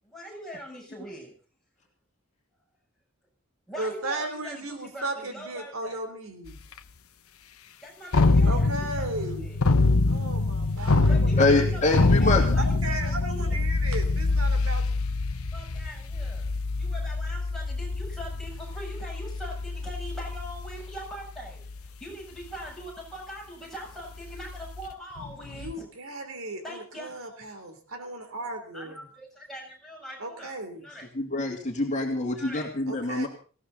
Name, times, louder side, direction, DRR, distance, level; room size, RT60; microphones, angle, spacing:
voice 1, 0.0-1.3 3.7-6.0 7.8-9.6 11.1-13.6 15.5-16.5 16.8-25.8 26.6-27.4 28.7-31.1 32.3-32.8, equal, ahead, -3 dB, 7.6 m, -42 dB
voice 2, 3.8-6.6 8.4-9.5 10.1-11.7 12.6-14.8 25.5-29.0 30.2-30.9 32.9-33.3, right 2 dB, 75° right, 7 dB, 3.4 m, -35 dB
sound 1, 6.5-6.6 8.1-21.9 22.4-22.7 24.1-25.7, left 3 dB, 90° left, 1.0 m, -25 dB
voice 3, 11.4-12.4 31.1-33.3, left 2 dB, 35° left, 1 dB, 2.7 m, -25 dB
19.5 x 16.5 x 4.1 m, 0.38 s
head